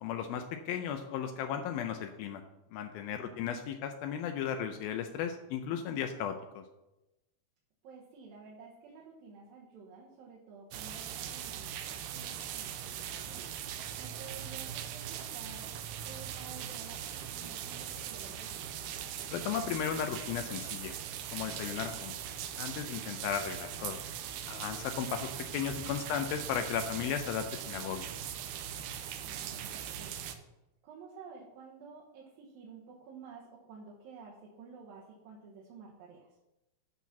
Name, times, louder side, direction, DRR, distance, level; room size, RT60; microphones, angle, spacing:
voice 1, 0.0-2.4 2.7-6.6 19.3-21.0 21.3-22.1 22.6-24.0 24.5-28.1, left 8 dB, 80° left, 6 dB, 2.2 m, -35 dB
voice 2, 3.1-3.5 7.8-13.5 14.0-18.7 29.2-30.3 30.8-36.4, right 5 dB, 70° right, -4 dB, 2.8 m, -52 dB
sound 1, 10.7-30.4, right 10 dB, 85° right, 2.7 m, -40 dB
12.0 x 4.3 x 6.0 m, 0.96 s
omnidirectional pair, 4.8 m